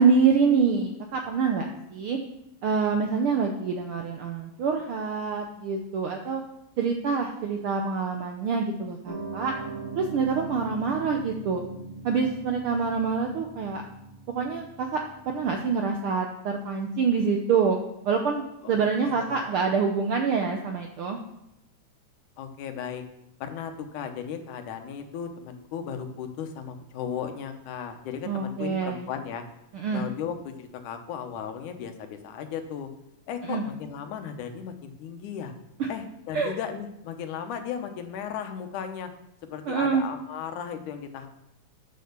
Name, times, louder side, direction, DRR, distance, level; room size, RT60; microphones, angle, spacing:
voice 1, 0.0-2.2 2.6-6.4 6.8-9.5 9.9-11.6 12.0-13.8 14.3-15.0 15.3-17.8 18.0-21.2 28.3-29.1 29.7-30.1 33.5-33.6 35.8-35.9 36.3-36.5 39.7-40.1, right 5 dB, 75° right, 3 dB, 1.2 m, -26 dB
Piano, 9.1-15.6, right 3 dB, 45° right, 3.1 m, -40 dB
voice 2, 18.6-19.5 22.4-23.0 23.4-29.4 29.9-32.9 33.3-35.5 35.9-39.1 39.5-41.3, left 8 dB, 85° left, 6 dB, 2.5 m, -36 dB
8.9 x 6.6 x 6.7 m, 0.82 s
omnidirectional pair, 3.4 m